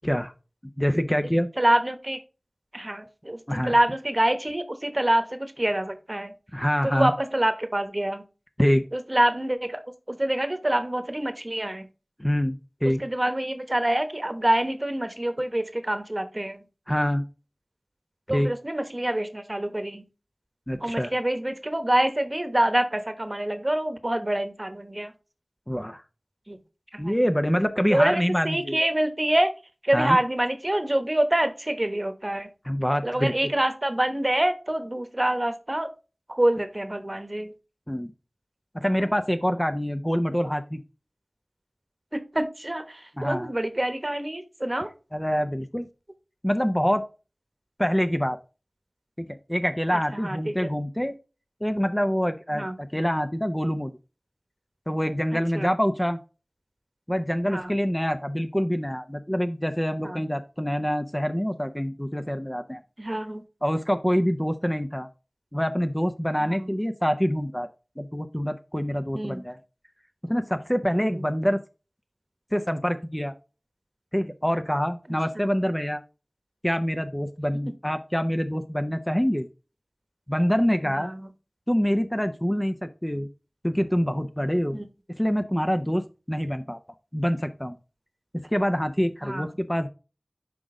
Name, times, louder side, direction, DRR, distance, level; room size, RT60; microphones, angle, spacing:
voice 1, 0.8-1.5 3.5-3.7 6.5-7.1 8.6-8.8 12.2-13.0 16.9-17.2 18.3-18.5 20.7-21.1 25.7-26.0 27.0-28.8 29.9-30.2 32.6-33.5 37.9-38.1 38.7-40.8 43.2-43.5 45.1-45.9 46.4-47.0 47.8-48.4 49.5-51.1 51.6-53.9 54.9-56.2 57.1-62.8 63.6-65.1 65.5-67.7 68.0-69.6 70.2-71.6 72.5-73.3 74.1-76.0 76.6-79.5 80.3-81.1 81.7-83.3 83.6-84.8 85.2-86.8 87.1-87.8 88.5-89.9, equal, 15° left, 7 dB, 0.6 m, -25 dB
voice 2, 1.6-2.2 2.7-3.4 3.7-6.3 6.8-8.2 9.1-9.8 10.1-11.8 13.0-16.6 18.3-20.0 20.8-25.1 26.5-26.6 26.9-27.1 27.9-29.5 29.8-32.5 33.0-35.9 36.3-37.5 42.1-44.9 49.9-50.7 52.5-52.7 55.5-55.7 57.5-57.7 60.0-60.2 63.0-63.4 66.4-66.6 69.1-69.4 71.0-71.1 75.4-75.5 84.7-84.8 89.2-89.4, right 1 dB, 35° right, 9 dB, 1.0 m, -26 dB
6.0 x 5.0 x 3.7 m, 0.31 s
wide cardioid pair, 40°, 0 cm